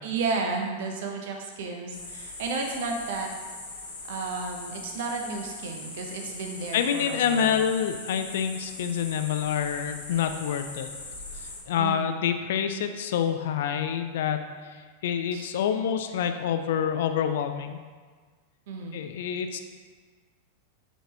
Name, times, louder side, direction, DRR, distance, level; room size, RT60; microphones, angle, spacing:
voice 1, 0.0-3.3 4.1-7.6 11.8-12.1 15.3-15.5 18.7-19.0, right 4 dB, 65° right, 2 dB, 0.6 m, -32 dB
sound 1, 1.9-11.6, left 2 dB, 80° left, 0.8 m, -41 dB
voice 2, 6.7-10.9 11.7-14.4 14.7-17.8 18.9-19.6, left 8 dB, 65° left, 8 dB, 0.3 m, -27 dB
4.2 x 2.9 x 3.2 m, 1.5 s
hypercardioid pair, 95°, 0 cm